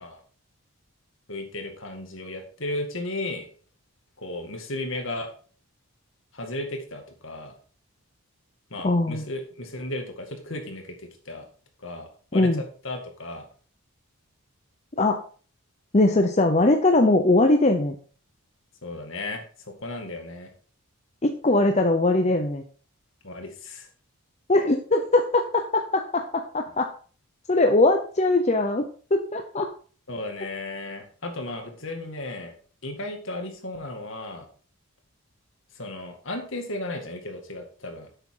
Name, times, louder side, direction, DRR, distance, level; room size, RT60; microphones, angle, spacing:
voice 1, 1.3-3.5 4.2-5.3 6.3-7.5 8.7-11.5 11.8-13.5 18.8-20.5 23.2-23.9 30.1-32.6 32.8-34.5 35.7-38.1, left 2 dB, 60° left, 4 dB, 2.2 m, -35 dB
voice 2, 8.8-9.2 12.3-12.6 15.0-15.2 15.9-18.0 21.2-22.6 24.5-26.9 27.5-29.7, left 2 dB, 30° left, 5 dB, 0.7 m, -21 dB
10.5 x 8.0 x 3.8 m, 0.41 s
head